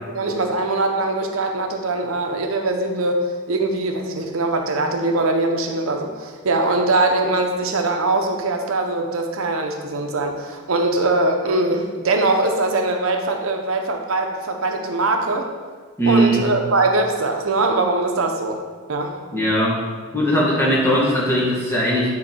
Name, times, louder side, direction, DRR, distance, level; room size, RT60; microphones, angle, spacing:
voice 1, 0.1-15.5 16.1-18.6 18.9-19.1, right 2 dB, 85° right, 4 dB, 0.7 m, -22 dB
voice 2, 16.0-16.5 19.3-19.8 20.1-22.1, equal, 10° left, -6 dB, 1.5 m, -19 dB
8.9 x 3.9 x 4.4 m, 1.5 s
head